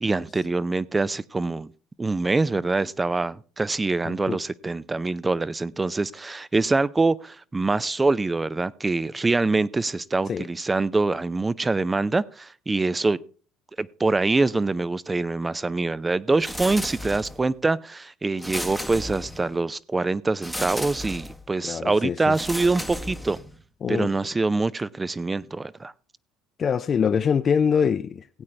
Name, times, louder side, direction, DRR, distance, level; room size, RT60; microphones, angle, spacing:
voice 1, 0.0-1.7 2.0-13.2 13.8-23.4 23.9-25.9, right 3 dB, 20° right, 0.5 m, -24 dB
voice 2, 4.0-4.4 10.3-10.5 21.6-22.4 23.8-24.1 26.6-28.4, left 7 dB, 40° left, 0.4 m, -24 dB
sound 1, 16.4-17.5 18.4-19.6 20.4-21.4 22.3-23.6, equal, ahead, 1.0 m, -34 dB
17.0 x 8.6 x 3.3 m
hypercardioid pair, 80°, 0 cm